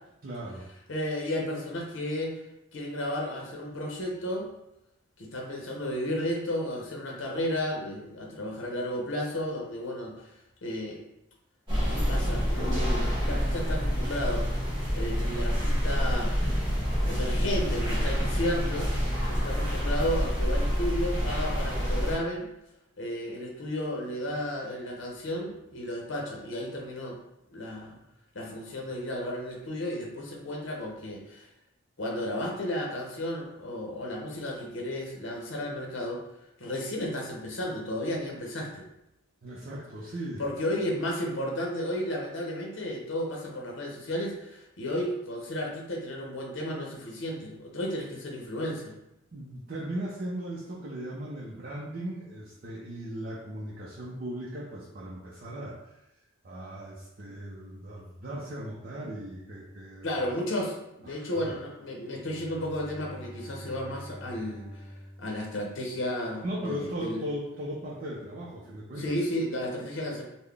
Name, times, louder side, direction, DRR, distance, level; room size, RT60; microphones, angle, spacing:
voice 1, 0.2-0.7 39.4-40.4 49.3-56.0 56.4-60.2 61.0-61.5 66.4-69.1, right 1 dB, 45° right, -6 dB, 0.5 m, -38 dB
voice 2, 0.9-2.3 2.7-4.5 5.2-10.3 10.6-11.0 11.9-14.5 14.9-16.3 17.0-18.9 19.3-22.5 23.0-27.2 27.5-28.0 28.3-31.5 32.0-36.2 36.6-38.9 40.4-49.0 60.0-64.9 65.2-67.2 69.0-70.2, left 1 dB, 60° left, -1 dB, 0.7 m, -33 dB
sound 1, 11.7-22.2, equal, 20° right, 1.3 m, -27 dB
Bowed string instrument, 62.1-66.4, equal, 15° left, 0.9 m, -46 dB
3.8 x 2.1 x 3.3 m, 0.86 s
head